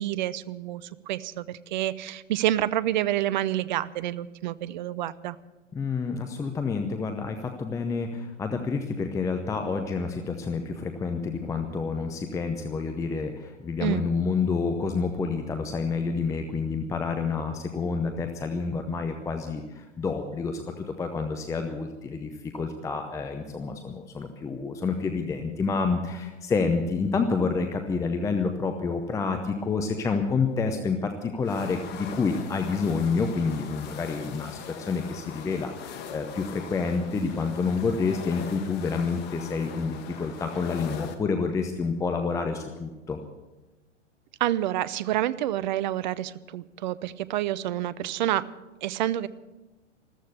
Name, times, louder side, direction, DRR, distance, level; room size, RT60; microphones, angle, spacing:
voice 1, 0.0-5.4 13.8-14.0 44.4-48.5 48.8-49.3, right 13 dB, 40° right, 18 dB, 0.6 m, -28 dB
voice 2, 5.7-43.2, left 4 dB, 10° left, 6 dB, 0.8 m, -28 dB
sound 1, 31.4-41.1, left 7 dB, 25° left, 1.5 m, -41 dB
14.0 x 14.0 x 6.8 m, 1.1 s
figure-of-eight pair, 110°, 37 cm